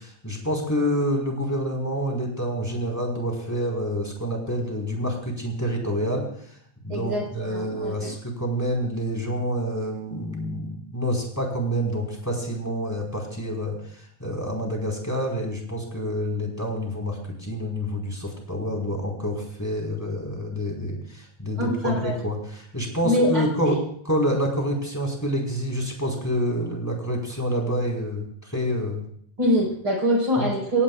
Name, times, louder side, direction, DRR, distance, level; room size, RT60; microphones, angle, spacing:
voice 1, 0.0-6.6 6.8-23.8 24.1-29.0 30.4-30.5, equal, 5° left, 0 dB, 4.3 m, -28 dB
voice 2, 6.9-8.1 21.6-22.2 23.0-23.8 29.4-30.8, equal, 30° right, 0 dB, 5.1 m, -24 dB
24.5 x 18.0 x 2.5 m, 0.64 s
omnidirectional pair, 4.6 m